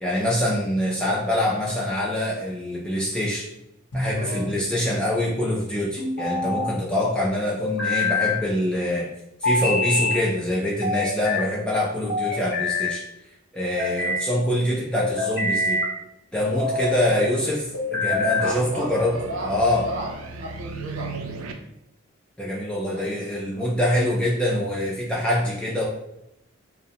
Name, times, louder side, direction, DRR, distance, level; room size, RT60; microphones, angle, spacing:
voice 1, 0.0-3.5 3.9-9.1 9.4-13.0 13.5-15.8 16.3-19.1 19.4-19.8 22.4-25.9, left 1 dB, 5° left, -5 dB, 0.3 m, -25 dB
sound 1, 3.9-4.6 6.0-6.7 7.6-8.4 9.4-10.2 10.8-11.5 12.1-13.0 13.6-14.2 15.0-15.9 16.5-17.0 17.7-18.6, left 3 dB, 55° left, 0.7 m, -25 dB
voice 2, 4.1-4.5 16.6-17.4 18.4-21.4 22.9-23.1, right 1 dB, 60° right, -2 dB, 0.7 m, -34 dB
sound 2, 16.6-21.5, right 4 dB, 80° right, 0.3 m, -39 dB
2.7 x 2.0 x 2.8 m, 0.82 s
head